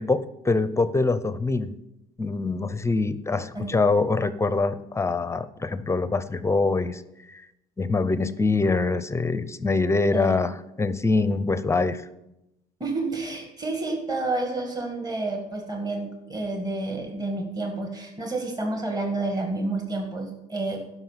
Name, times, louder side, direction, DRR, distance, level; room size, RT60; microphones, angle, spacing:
voice 1, 0.0-1.7 2.2-7.0 7.3-7.5 7.8-12.0, left 3 dB, 15° left, 14 dB, 0.6 m, -24 dB
voice 2, 12.8-20.8, right 2 dB, 25° right, 2 dB, 2.0 m, -29 dB
11.5 x 5.7 x 7.3 m, 0.90 s
cardioid pair, 110°, 17 cm